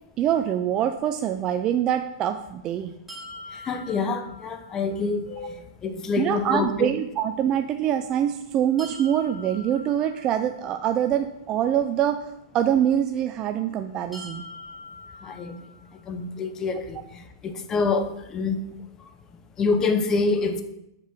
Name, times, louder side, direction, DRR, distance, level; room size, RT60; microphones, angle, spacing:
voice 1, 0.2-2.9 6.2-12.3 12.5-14.4, right 10 dB, 30° right, 7 dB, 0.4 m, -24 dB
sound 1, 3.1-5.0 8.8-10.8 14.1-16.1, left 1 dB, 5° right, 3.0 m, -44 dB
voice 2, 3.5-6.9 15.2-15.6 16.1-18.6 19.0-19.1 19.6-20.6, left 4 dB, 20° left, 8 dB, 0.8 m, -26 dB
6.8 x 5.5 x 6.1 m, 0.84 s
hypercardioid pair, 135°, 2 cm